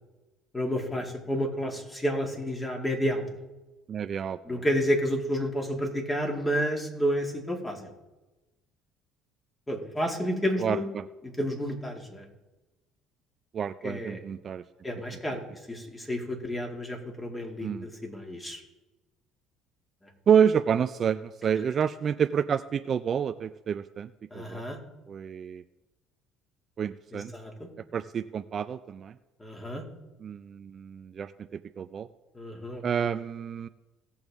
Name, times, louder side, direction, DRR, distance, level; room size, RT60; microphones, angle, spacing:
voice 1, 0.5-3.3 4.5-7.8 9.7-10.8 11.4-12.2 13.8-14.2 14.8-15.4 15.7-18.6 24.3-24.8 27.1-27.7 29.4-29.8 32.3-32.8, equal, 15° left, 1 dB, 2.3 m, -30 dB
voice 2, 3.9-4.6 10.6-11.1 13.5-14.6 17.6-17.9 20.3-24.6 25.1-25.6 26.8-27.3 27.9-29.2 30.2-32.1 32.8-33.7, right 8 dB, 40° right, 11 dB, 0.4 m, -28 dB
17.5 x 7.0 x 3.6 m, 1.1 s
cardioid pair, 105°, 0 cm